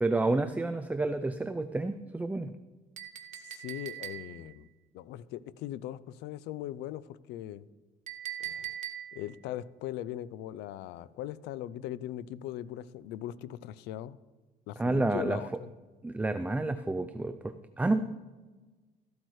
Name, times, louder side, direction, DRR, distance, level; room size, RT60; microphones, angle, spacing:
voice 1, 0.0-2.5 14.8-15.4 16.0-18.0, right 2 dB, 10° right, 10 dB, 0.4 m, -30 dB
Chink clink, 3.0-4.5 8.1-9.3, right 11 dB, 45° right, 0.9 m, -40 dB
voice 2, 3.4-4.7 4.9-7.7 8.4-8.7 9.1-14.2 14.7-15.7, left 12 dB, 90° left, 18 dB, 0.5 m, -40 dB
14.0 x 12.0 x 3.1 m, 1.3 s
cardioid pair, 110°, 17 cm